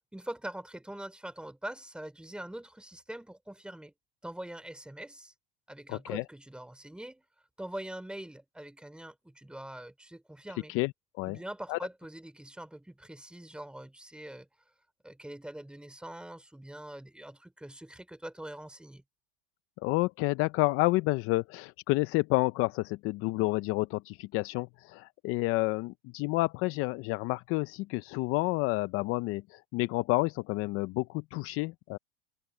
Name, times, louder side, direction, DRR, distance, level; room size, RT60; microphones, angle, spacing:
voice 1, 0.1-3.9 4.2-5.3 5.7-7.2 7.6-10.7 11.3-14.5 15.0-19.0, right 1 dB, 5° right, 3.0 m, -43 dB
voice 2, 5.9-6.2 10.7-10.9 11.2-11.4 11.7-11.8 19.8-32.0, left 22 dB, 45° left, 0.6 m, -29 dB
supercardioid pair, 125°, 31 cm